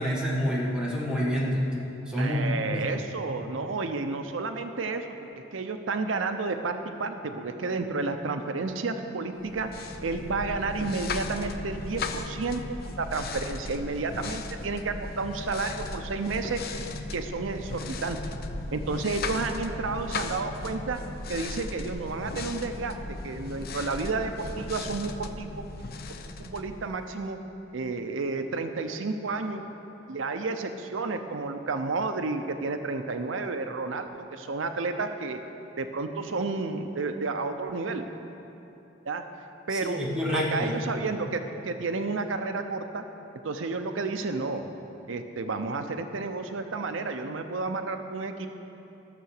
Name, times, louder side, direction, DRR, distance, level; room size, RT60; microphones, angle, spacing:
voice 1, 0.0-1.6 2.1-2.8 39.7-40.7, equal, 5° right, -5 dB, 2.0 m, -28 dB
voice 2, 2.2-5.0 5.5-12.6 13.0-18.2 18.7-21.0 21.3-22.9 23.2-25.5 26.4-27.4 27.7-29.6 30.1-35.4 35.8-38.1 39.1-39.2 39.7-40.0 40.3-43.0 43.4-44.7 45.1-48.5, right 3 dB, 90° right, 7 dB, 0.6 m, -31 dB
sound 1, 9.4-27.3, left 3 dB, 50° left, 0.6 m, -37 dB
14.5 x 6.9 x 6.5 m, 2.9 s
head